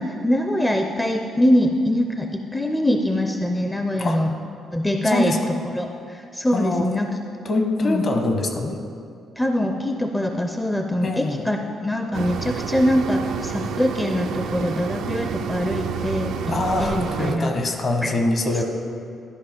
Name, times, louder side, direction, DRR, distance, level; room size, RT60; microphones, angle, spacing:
voice 1, 0.0-2.3 2.5-4.3 4.7-5.3 5.6-7.1 7.8-8.1 9.4-16.5 16.8-17.5 18.0-18.1, left 1 dB, 10° left, 4 dB, 0.5 m, -23 dB
voice 2, 5.0-5.4 6.5-6.9 7.4-8.8 11.0-11.5 16.5-18.6, left 2 dB, 45° left, 5 dB, 1.1 m, -24 dB
sound 1, 12.1-17.4, right 7 dB, 80° right, 0.5 m, -29 dB
12.0 x 5.2 x 5.2 m, 2.4 s
cardioid pair, 90°, 0 cm